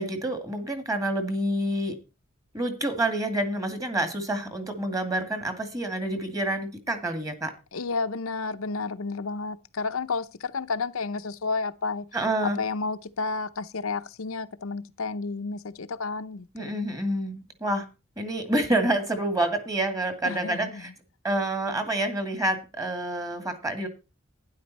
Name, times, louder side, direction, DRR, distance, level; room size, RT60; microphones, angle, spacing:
voice 1, 0.0-2.0 2.5-7.5 12.1-12.6 16.5-17.3 17.6-17.8 18.2-20.9 21.2-23.9, right 1 dB, 15° right, 2.1 m, -28 dB
voice 2, 7.7-12.1 12.6-16.8 20.2-20.8, left 4 dB, 75° left, 0.7 m, -31 dB
12.0 x 10.0 x 4.1 m
head